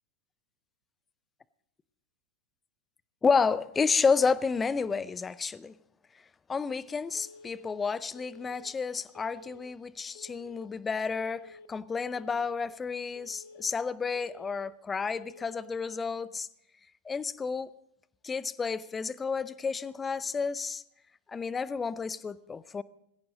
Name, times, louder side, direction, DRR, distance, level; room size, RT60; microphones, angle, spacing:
voice 1, 3.2-5.7 6.5-16.5 17.1-17.7 18.2-20.8 21.3-22.8, left 5 dB, 15° left, 0.6 m, -30 dB
Telephone, 7.1-7.7 8.1-8.7 9.1-9.7 10.1-10.7 11.1-11.7 12.1-12.7 13.1-13.7 14.1-14.7 15.1-15.7, left 4 dB, 55° left, 1.0 m, -51 dB
19.5 x 16.5 x 3.9 m
figure-of-eight pair, 90°, 0 cm